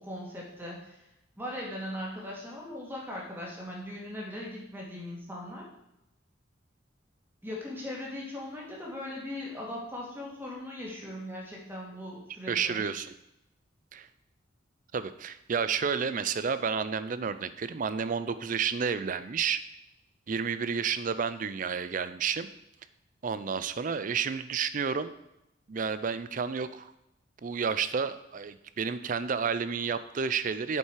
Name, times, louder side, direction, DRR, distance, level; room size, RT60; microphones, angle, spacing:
voice 1, 0.0-1.1 1.4-5.7 7.4-12.8, left 1 dB, 10° right, -3 dB, 2.1 m, -39 dB
voice 2, 12.5-13.1 13.9-14.1 14.9-19.6 20.3-22.5 23.2-25.1 25.7-26.9 27.4-30.8, right 6 dB, 45° right, 13 dB, 0.4 m, -31 dB
8.2 x 5.6 x 4.7 m, 0.86 s
head